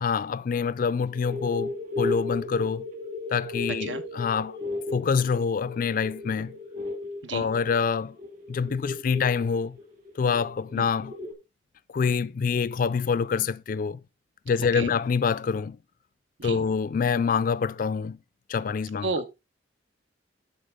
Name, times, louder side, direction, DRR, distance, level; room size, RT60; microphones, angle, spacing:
voice 1, 0.0-2.9 3.3-4.6 4.9-6.6 7.3-8.2 8.5-9.8 10.2-11.1 11.9-14.0 14.5-15.8 16.4-18.2 18.5-19.1, left 6 dB, 45° left, 0.3 m, -26 dB
sound 1, 1.1-11.3, left 2 dB, 45° right, 2.3 m, -35 dB
voice 2, 3.8-4.0 7.2-7.5 10.8-10.9 14.7-14.9 16.4-16.6 19.0-19.3, right 3 dB, 85° right, 1.2 m, -31 dB
11.5 x 4.7 x 3.6 m
head